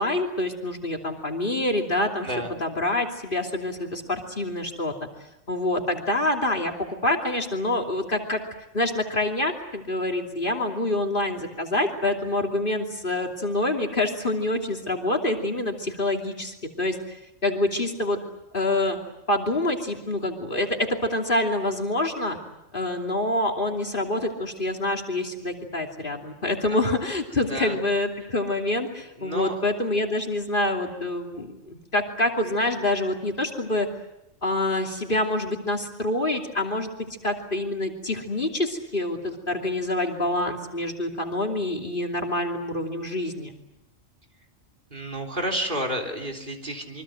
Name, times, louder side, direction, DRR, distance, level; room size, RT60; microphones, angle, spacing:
voice 1, 0.0-4.9 5.5-8.4 8.7-18.2 18.5-19.0 19.3-22.4 22.7-33.9 34.4-36.9 37.2-43.6, left 1 dB, 40° left, 2 dB, 3.1 m, -26 dB
voice 2, 29.2-29.6 44.9-47.0, right 1 dB, 40° right, 5 dB, 3.8 m, -30 dB
27.5 x 24.5 x 7.8 m, 0.86 s
omnidirectional pair, 1.3 m